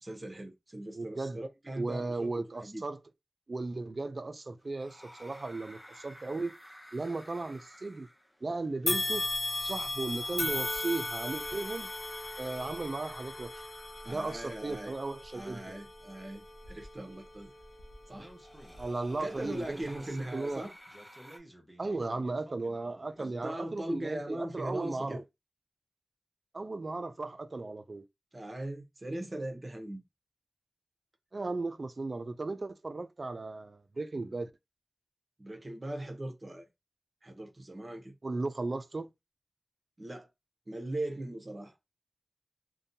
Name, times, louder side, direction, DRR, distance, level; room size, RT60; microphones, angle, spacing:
voice 1, 0.0-2.8 14.0-14.9 15.3-17.5 18.1-18.3 19.2-20.7 23.2-25.2 28.3-30.0 35.4-36.7 37.2-38.1 40.0-40.3 40.7-41.7, right 1 dB, 35° right, 0.7 m, -39 dB
voice 2, 0.9-1.4 1.8-3.0 3.5-6.5 6.9-8.1 8.4-9.3 9.6-11.9 12.4-13.5 14.0-15.8 18.8-19.8 20.3-20.7 21.8-25.2 26.5-28.0 31.3-34.5 38.2-39.1, right 3 dB, 50° right, 0.3 m, -36 dB
sound 1, 4.6-21.4, equal, 15° left, 0.6 m, -54 dB
sound 2, 8.9-18.2 18.7-18.8 19.8-19.9, left 2 dB, 60° left, 0.8 m, -37 dB
Speech, 18.1-23.3, right 1 dB, 10° right, 1.0 m, -55 dB
2.6 x 2.2 x 2.6 m
wide cardioid pair, 70°, 0 cm